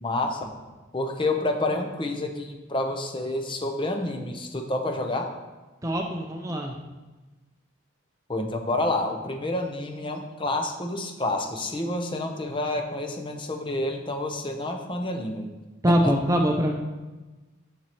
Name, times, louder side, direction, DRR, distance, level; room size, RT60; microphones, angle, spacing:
voice 1, 0.0-0.5 0.9-5.3 8.3-15.5 15.9-16.1, left 2 dB, 25° left, 4 dB, 0.7 m, -29 dB
voice 2, 5.8-6.7 15.8-16.7, equal, 15° right, 2 dB, 0.5 m, -23 dB
7.5 x 7.2 x 3.0 m, 1.2 s
head